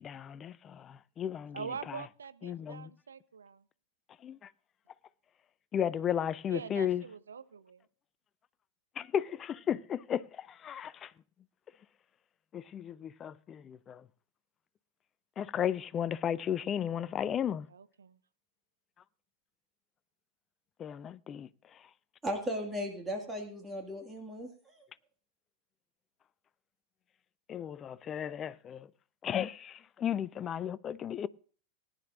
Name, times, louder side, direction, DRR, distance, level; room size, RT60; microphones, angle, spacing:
voice 1, 0.0-2.1 2.4-2.9 4.2-4.5 5.7-7.0 9.0-11.1 12.5-14.1 15.4-17.7 20.8-21.8 27.5-28.9 29.2-31.3, left 9 dB, 25° left, 0.5 m, -34 dB
voice 2, 1.5-3.6 6.5-7.8 17.7-18.2, right 6 dB, 70° right, 0.7 m, -44 dB
voice 3, 22.2-24.9, equal, 15° right, 1.8 m, -37 dB
20.0 x 10.5 x 2.5 m
figure-of-eight pair, 90°, 0 cm